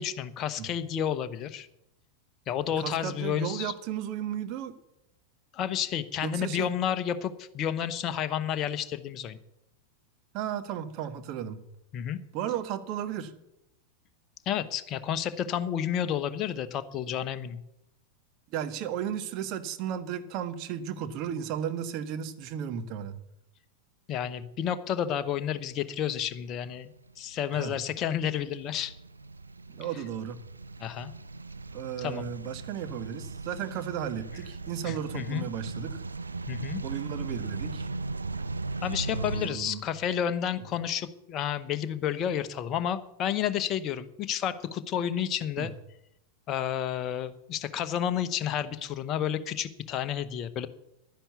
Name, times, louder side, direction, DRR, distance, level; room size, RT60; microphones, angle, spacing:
voice 1, 0.0-1.7 2.5-3.7 5.5-9.4 11.9-12.2 14.5-17.6 24.1-26.9 27.2-28.9 30.8-31.1 32.0-32.3 34.8-35.4 36.5-36.8 38.8-45.7 46.5-50.7, left 9 dB, 35° left, 11 dB, 0.9 m, -31 dB
voice 2, 2.8-4.8 6.2-6.7 10.3-11.6 12.3-13.3 18.5-23.2 27.5-27.8 29.7-30.4 31.7-36.0 36.8-37.9 39.1-39.9 45.6-45.7, right 9 dB, 40° right, 10 dB, 1.1 m, -34 dB
sound 1, 26.6-39.5, right 3 dB, 80° right, 0.6 m, -38 dB
11.5 x 10.0 x 6.9 m, 0.83 s
figure-of-eight pair, 90°, 0 cm